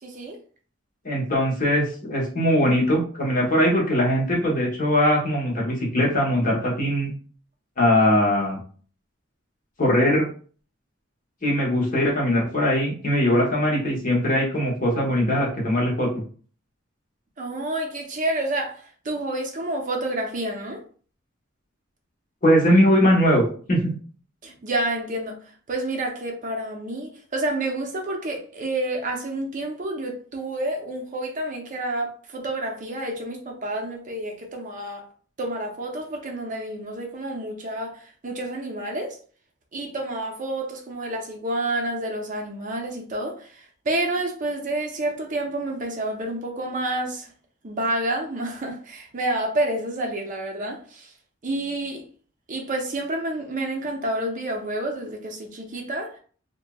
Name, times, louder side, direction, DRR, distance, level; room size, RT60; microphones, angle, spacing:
voice 1, 0.0-0.4 17.4-20.8 24.4-25.4 25.7-35.0 35.4-39.2 39.7-47.3 47.6-51.1 51.4-52.0 52.5-56.2, right 1 dB, 40° right, 0.5 m, -29 dB
voice 2, 1.0-7.1 7.8-8.6 9.8-10.3 11.4-16.1 22.4-23.4 23.7-23.9, equal, 40° left, 1.0 m, -21 dB
2.9 x 2.5 x 2.2 m
head